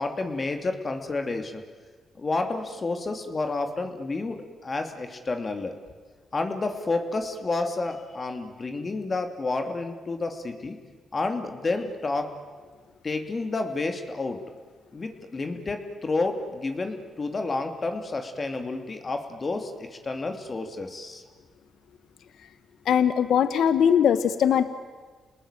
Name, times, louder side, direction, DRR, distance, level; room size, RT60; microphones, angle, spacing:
voice 1, 0.0-1.6 2.2-5.7 6.3-10.8 11.1-12.3 13.0-14.4 14.9-21.2, left 3 dB, 40° left, 5 dB, 2.7 m, -30 dB
voice 2, 22.9-24.7, left 8 dB, 80° left, 12 dB, 1.1 m, -20 dB
29.0 x 20.0 x 9.0 m, 1.5 s
cardioid pair, 70°, 0 cm